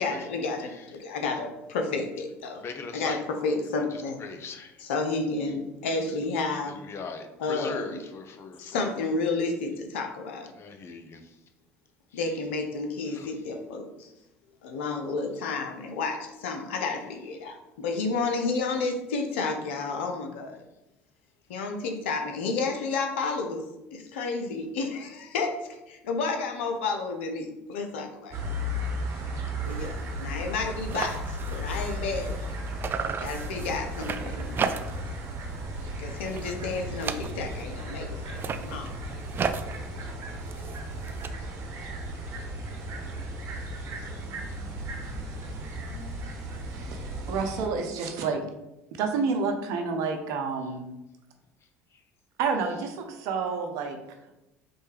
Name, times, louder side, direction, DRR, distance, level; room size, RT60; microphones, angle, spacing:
voice 1, 0.0-2.6 2.9-4.2 4.8-6.8 7.4-8.0 8.6-10.5 12.1-14.1 14.6-20.6 21.5-23.7 23.9-25.6 25.9-28.4 29.6-31.2 31.5-32.5 33.2-34.7 36.0-38.9, left 3 dB, 80° left, 4 dB, 0.7 m, -31 dB
voice 2, 2.6-3.2 4.2-4.7 6.1-6.2 6.6-8.9 10.5-11.2 13.1-13.3, left 4 dB, 45° left, 6 dB, 0.7 m, -39 dB
sound 1, 28.3-47.7, equal, 50° right, 1.0 m, -35 dB
sound 2, 29.7-29.9 30.2-30.3 30.5-32.5 32.8-35.2 35.5-35.9 36.2-37.7 38.2-41.3, right 6 dB, 35° right, 0.3 m, -35 dB
voice 3, 46.8-48.4 49.0-50.9 52.4-54.0, right 5 dB, 65° right, 5 dB, 0.7 m, -29 dB
4.4 x 3.2 x 3.3 m, 0.94 s
hypercardioid pair, 70°, 6 cm